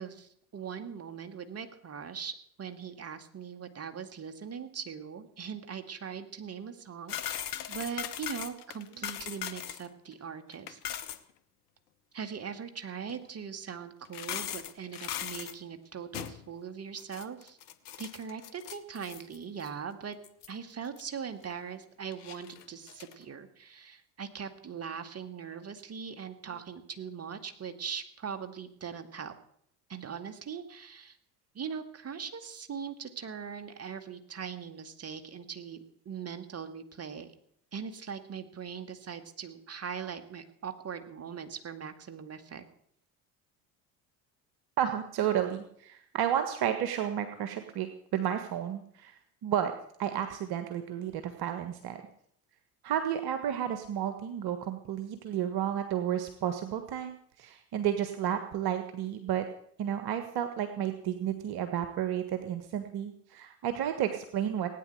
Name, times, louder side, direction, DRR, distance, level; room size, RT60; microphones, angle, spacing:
voice 1, 0.0-10.8 12.1-17.6 18.0-20.2 20.5-29.3 29.9-31.2 31.5-37.3 37.7-42.6, right 7 dB, 30° right, 8 dB, 2.2 m, -41 dB
sound 1, 7.1-9.9 10.1-10.2 10.5-11.2 13.1-13.2 14.0-15.5 16.1-16.5 17.0-19.4 19.6-19.7 20.2-20.5 21.0-21.1 22.1-23.1, left 11 dB, 70° left, 1.2 m, -39 dB
voice 2, 44.8-49.7 50.0-52.0 52.8-59.4 59.8-64.7, right 10 dB, 50° right, 8 dB, 1.6 m, -32 dB
18.0 x 9.4 x 7.8 m, 0.66 s
figure-of-eight pair, 65°, 47 cm